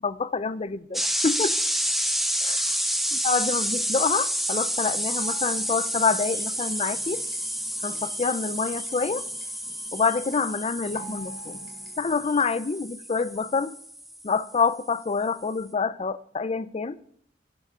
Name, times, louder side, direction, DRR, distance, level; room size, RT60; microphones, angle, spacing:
voice 1, 0.0-1.6 2.4-2.8 3.1-7.2 7.8-9.2 9.9-11.6 12.0-13.8 14.2-17.0, left 4 dB, 35° left, 15 dB, 0.5 m, -27 dB
sound 1, 0.9-14.5, equal, ahead, 1.0 m, -29 dB
sound 2, 5.2-12.4, right 1 dB, 50° left, 2.0 m, -47 dB
16.0 x 10.0 x 3.7 m, 0.69 s
head